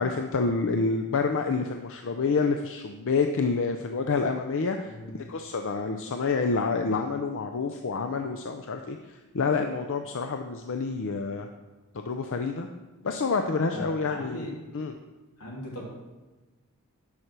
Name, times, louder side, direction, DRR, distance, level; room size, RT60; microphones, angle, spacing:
voice 1, 0.0-9.0 9.3-11.5 11.9-12.7 13.0-14.5 14.7-14.9, left 4 dB, 60° left, 5 dB, 0.6 m, -28 dB
voice 2, 4.8-5.3 13.7-14.5 15.4-15.8, left 1 dB, 85° left, -2 dB, 2.9 m, -39 dB
9.6 x 5.8 x 6.1 m, 1.2 s
head